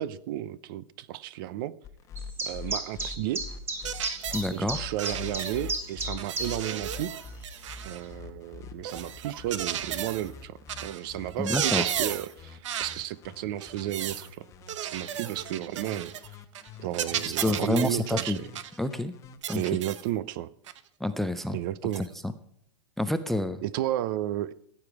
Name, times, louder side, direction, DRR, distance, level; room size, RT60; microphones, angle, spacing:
voice 1, 0.0-1.8 2.4-3.5 4.5-7.1 7.8-14.5 14.8-16.4 16.8-18.5 19.5-20.5 21.5-22.0 23.6-24.5, right 13 dB, 50° right, 20 dB, 0.6 m, -33 dB
sound 1, 1.8-19.4, left 6 dB, 20° left, 0.9 m, -45 dB
sound 2, 2.2-6.7 7.0-7.1 7.7-7.8, right 2 dB, 15° right, 1.6 m, -32 dB
sound 3, 3.8-4.5 5.0-5.8 6.2-8.0 8.8-10.3 10.7-11.0 11.3-12.3 12.6-13.0 13.6-14.3 14.7-16.3 16.5-16.7 16.9-18.8 19.4-20.1 20.7-20.8 21.9-22.1, right 10 dB, 85° right, 0.9 m, -34 dB
voice 2, 4.3-4.8 11.4-11.9 17.4-18.4 18.8-19.1 19.5-19.6 21.0-21.6 22.2-22.3 23.0-23.6, left 1 dB, ahead, 12 dB, 0.3 m, -28 dB
15.0 x 8.8 x 4.7 m, 0.69 s
supercardioid pair, 160°, 15 cm